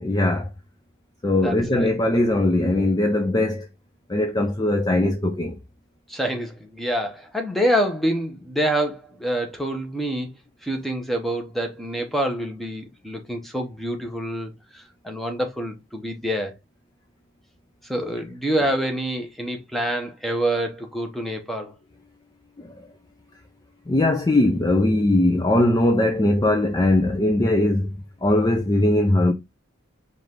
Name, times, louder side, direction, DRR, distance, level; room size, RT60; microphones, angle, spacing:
voice 1, 0.0-0.5 1.2-3.7 4.1-5.6 22.6-22.9 23.9-27.9 28.2-29.3, left 1 dB, 20° left, 0.4 m, -20 dB
voice 2, 1.4-1.9 6.1-10.3 10.6-16.6 17.8-21.8, right 1 dB, ahead, 0.9 m, -26 dB
4.9 x 2.5 x 3.6 m
head